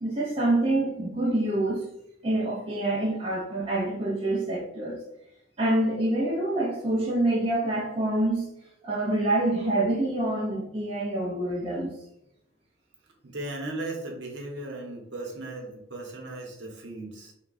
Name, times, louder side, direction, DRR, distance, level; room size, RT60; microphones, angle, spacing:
voice 1, 0.0-1.9 2.2-5.0 5.6-8.5 8.8-11.9, right 1 dB, 30° right, 0.5 m, -26 dB
voice 2, 13.2-17.3, right 2 dB, 60° right, 0.9 m, -37 dB
3.4 x 2.3 x 3.9 m
head